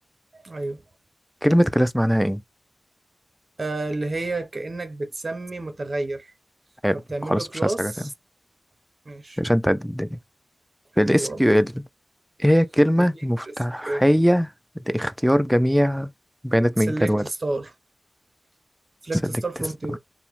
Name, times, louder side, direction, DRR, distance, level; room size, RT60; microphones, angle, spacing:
voice 1, 0.3-0.8 3.6-6.3 7.1-8.1 9.1-9.4 11.0-11.5 13.4-13.5 13.8-14.1 16.8-17.7 19.0-20.0, right 2 dB, 45° right, 0.6 m, -30 dB
voice 2, 1.4-2.4 6.8-7.9 9.4-10.2 11.0-11.7 12.4-14.5 14.9-16.1 16.4-17.2, equal, ahead, 0.3 m, -21 dB
2.9 x 2.1 x 3.0 m
cardioid pair, 60°, 0 cm